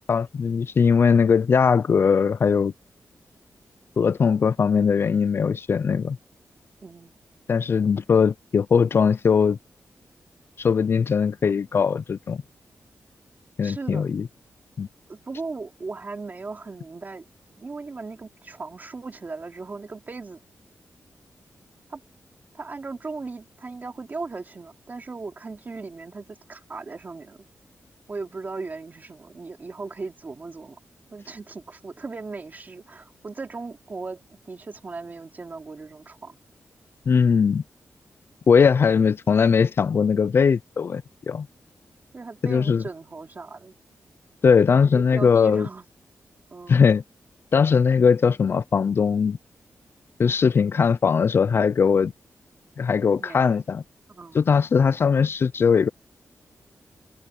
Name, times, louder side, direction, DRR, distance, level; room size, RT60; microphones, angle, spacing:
voice 1, 0.1-2.7 4.0-6.2 7.5-9.6 10.6-12.4 13.6-14.3 14.8-14.9 37.1-37.6 38.5-41.5 42.4-42.8 44.4-45.7 46.7-47.0 47.5-49.4 50.2-52.1 52.8-53.8 54.3-55.9, left 6 dB, 50° left, 0.4 m, -20 dB
voice 2, 6.8-7.1 13.6-14.0 15.1-17.3 17.6-20.4 21.9-22.0 22.5-27.4 28.1-30.8 31.1-36.4 42.1-43.8 44.7-45.9 46.5-46.8 53.2-53.5 54.1-54.4, right 3 dB, 35° right, 2.9 m, -37 dB
wide cardioid pair, 125°, 5 cm